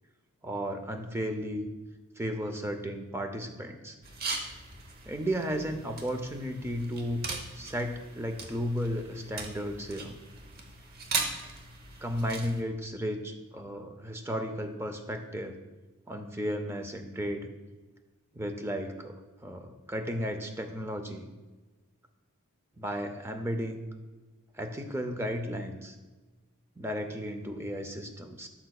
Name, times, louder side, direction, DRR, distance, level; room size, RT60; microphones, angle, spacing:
voice 1, 0.4-1.7 2.2-4.0 5.1-7.3 7.5-10.1 12.0-15.6 16.1-17.5 18.3-19.1 19.4-21.3 22.8-23.9 24.5-26.0 26.8-28.5, equal, 10° right, 6 dB, 0.5 m, -34 dB
sound 1, 4.0-12.6, right 3 dB, 45° right, 0.8 m, -39 dB
12.0 x 5.6 x 2.3 m, 1.2 s
head